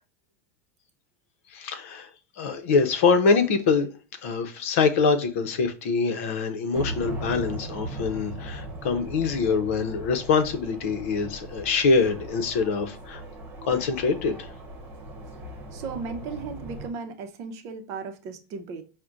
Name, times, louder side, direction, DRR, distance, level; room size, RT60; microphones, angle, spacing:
voice 1, 1.5-2.1 2.4-3.9 4.2-13.2 13.6-14.5, left 4 dB, 70° left, 0.7 m, -24 dB
sound 1, 6.7-16.9, right 1 dB, 20° right, 1.0 m, -38 dB
voice 2, 15.7-18.8, right 5 dB, 45° right, 0.6 m, -36 dB
5.8 x 2.2 x 2.4 m
supercardioid pair, 160°, 7 cm